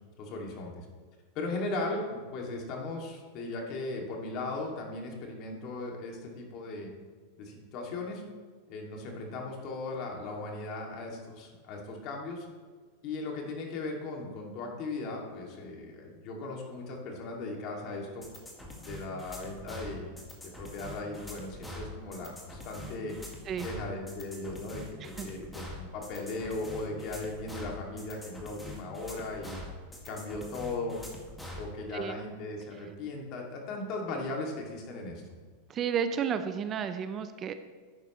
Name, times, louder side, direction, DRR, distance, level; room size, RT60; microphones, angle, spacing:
voice 1, 0.2-0.7 1.3-6.9 7.4-8.2 8.7-12.5 13.0-18.3 18.8-20.2 20.4-23.2 23.6-29.6 30.0-31.0 31.6-35.2, left 2 dB, 50° left, 0 dB, 2.4 m, -37 dB
sound 1, 18.2-31.7, left 1 dB, 10° left, 2.0 m, -44 dB
voice 2, 35.7-37.5, right 7 dB, 30° right, 10 dB, 0.6 m, -32 dB
11.5 x 9.1 x 3.1 m, 1.5 s
supercardioid pair, 125°, 0 cm